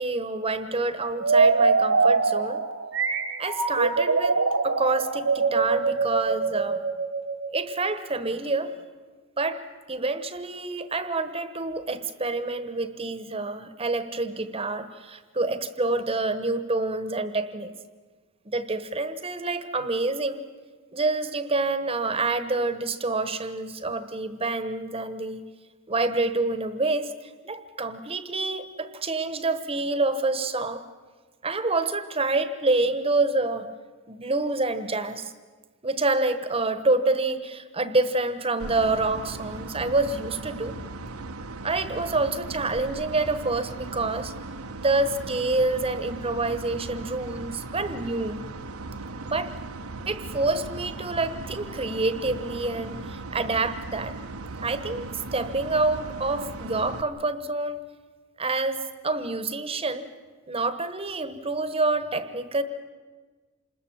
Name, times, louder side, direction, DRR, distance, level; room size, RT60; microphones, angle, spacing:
voice 1, 0.0-2.6 3.4-4.4 4.6-6.8 7.5-8.7 9.4-9.6 9.9-17.7 18.4-20.4 20.9-25.5 25.9-30.8 31.4-33.7 34.1-35.3 35.8-40.7 41.6-44.3 44.8-48.4 49.2-49.5 50.1-54.2 54.6-57.8 58.4-60.1 60.5-62.6, right 3 dB, 25° right, 11 dB, 1.2 m, -27 dB
sound 1, 1.2-7.9, right 4 dB, 60° right, 1.4 m, -23 dB
sound 2, 38.6-57.0, right 2 dB, 80° right, 1.1 m, -38 dB
27.0 x 21.0 x 7.4 m, 1.4 s
head